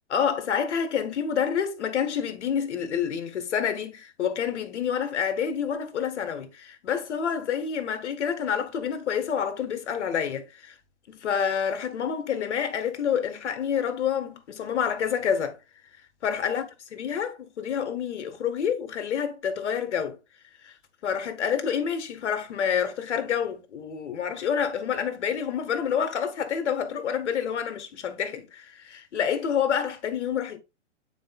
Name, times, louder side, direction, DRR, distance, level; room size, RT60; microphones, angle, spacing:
voice 1, 0.1-10.7 11.1-15.6 16.2-16.6 16.9-20.2 20.6-20.7 21.0-30.6, left 7 dB, 70° left, 1.6 m, -28 dB
9.2 x 4.7 x 2.3 m
hypercardioid pair, 125°, 36 cm